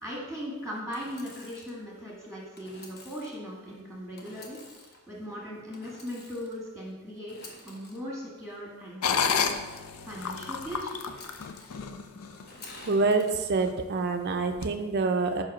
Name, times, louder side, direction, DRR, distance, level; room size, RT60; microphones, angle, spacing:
voice 1, 0.0-7.4 7.6-9.6 10.0-10.9, equal, 5° left, -4 dB, 1.4 m, -39 dB
Engine / Sawing, 0.9-1.7 2.5-3.4 4.2-5.0 5.7-6.6 7.2-8.0 9.0-9.8 11.0-11.8 12.4-13.3, left 2 dB, 45° left, 1.0 m, -49 dB
sound 1, 9.0-12.5 13.0-13.1 13.6-14.0 14.6-14.7, left 6 dB, 75° left, 0.5 m, -30 dB
voice 2, 12.8-15.4, right 3 dB, 45° right, 4 dB, 0.5 m, -26 dB
4.9 x 4.9 x 5.8 m, 1.2 s
head